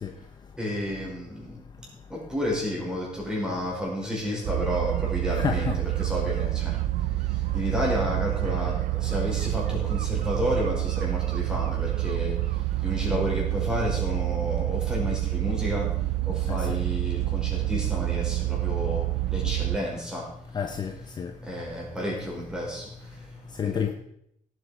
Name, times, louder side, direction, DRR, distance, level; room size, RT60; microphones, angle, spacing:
voice 1, 0.6-20.6 21.1-23.9, equal, 5° right, 5.3 m, -32 dB
sound 1, 4.4-19.8, right 17 dB, 85° right, 0.5 m, -27 dB
voice 2, 5.4-5.8 13.1-13.2 16.5-16.8 20.5-21.3 23.5-23.9, left 7 dB, 30° left, 0.8 m, -30 dB
17.0 x 8.2 x 5.1 m
cardioid pair, 165°, 13 cm